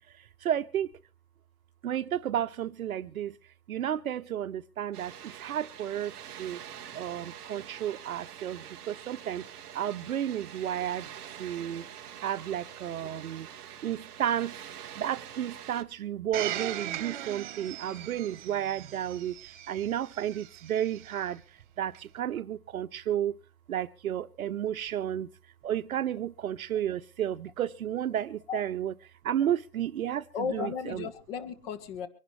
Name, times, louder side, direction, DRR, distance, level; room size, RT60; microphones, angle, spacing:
voice 1, 0.4-0.9 1.8-3.3 3.7-6.1 6.4-6.6 6.9-9.4 9.7-11.1 11.4-11.8 12.2-13.5 13.8-14.5 15.0-19.3 19.7-21.4 21.8-23.3 23.7-25.3 25.6-28.9 29.2-30.2 30.5-31.0, right 10 dB, 60° right, 0.8 m, -32 dB
Water, 4.9-15.8, right 9 dB, 10° right, 0.6 m, -45 dB
Domestic sounds home sounds, 16.3-21.2 21.9-22.0, right 11 dB, 30° right, 1.4 m, -39 dB
voice 2, 30.3-32.1, left 7 dB, 35° left, 1.7 m, -35 dB
25.0 x 11.0 x 3.3 m
hypercardioid pair, 155°, 48 cm